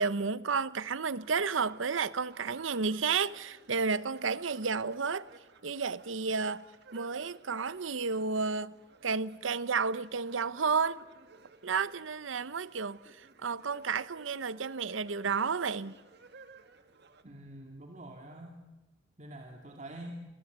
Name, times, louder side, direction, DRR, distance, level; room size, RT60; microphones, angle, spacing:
voice 1, 0.0-5.3 5.6-6.7 6.9-8.8 9.0-11.0 11.6-15.9, right 5 dB, 85° right, 0.8 m, -31 dB
sound 1, 1.2-17.2, right 4 dB, 60° right, 2.0 m, -58 dB
voice 2, 17.2-18.6 19.2-20.1, right 1 dB, 40° right, 2.3 m, -46 dB
29.0 x 22.5 x 8.1 m
head